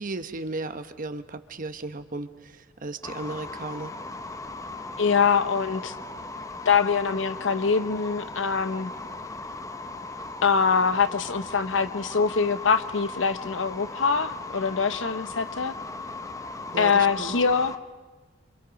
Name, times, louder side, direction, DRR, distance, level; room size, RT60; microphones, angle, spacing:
voice 1, 0.0-3.9 16.7-17.3, right 2 dB, 45° right, 9 dB, 1.1 m, -35 dB
sound 1, 3.0-17.8, left 3 dB, 15° left, 0.7 m, -38 dB
voice 2, 5.0-5.9 6.6-8.9 10.4-15.7 16.8-17.7, left 5 dB, 75° left, 12 dB, 0.9 m, -24 dB
27.0 x 26.0 x 5.2 m, 1.3 s
head